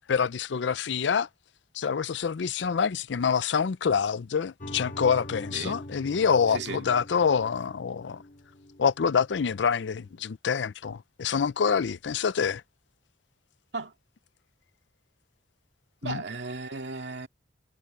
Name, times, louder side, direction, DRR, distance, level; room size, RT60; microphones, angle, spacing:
voice 1, 0.1-1.3 1.7-8.2 8.8-12.6 16.0-16.2, left 6 dB, 80° left, 0.5 m, -26 dB
sound 1, 4.6-9.8, left 1 dB, 50° left, 1.6 m, -43 dB
voice 2, 5.5-5.8 6.5-6.8 13.7-13.9 16.0-17.3, right 3 dB, 70° right, 2.2 m, -35 dB
head